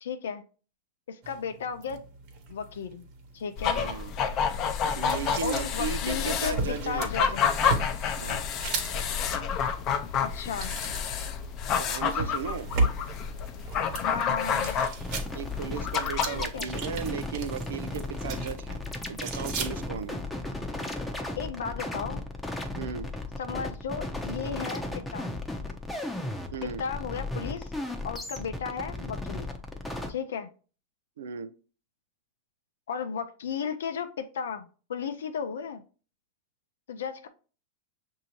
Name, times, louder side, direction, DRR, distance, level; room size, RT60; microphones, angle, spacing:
voice 1, 0.0-0.4 1.1-2.0 2.5-3.1 3.3-3.8 5.4-7.5 10.3-10.8 14.0-14.9 16.3-16.7 21.4-22.2 23.4-25.3 26.8-27.7 28.0-29.5 30.1-30.5 32.9-35.8 36.9-37.3, left 6 dB, 85° left, 0.4 m, -34 dB
sound 1, 1.2-20.3, right 3 dB, 50° right, 1.1 m, -37 dB
sound 2, 3.6-16.5, left 7 dB, 40° left, 0.6 m, -29 dB
voice 2, 3.7-4.1 5.0-7.1 8.2-8.5 11.8-12.7 15.3-18.8 19.1-20.2 22.8-23.1 26.5-26.8 31.2-31.5, right 7 dB, 85° right, 0.4 m, -36 dB
sound 3, 15.0-30.1, left 2 dB, 5° left, 0.7 m, -35 dB
6.1 x 2.7 x 2.9 m
hypercardioid pair, 125°, 0 cm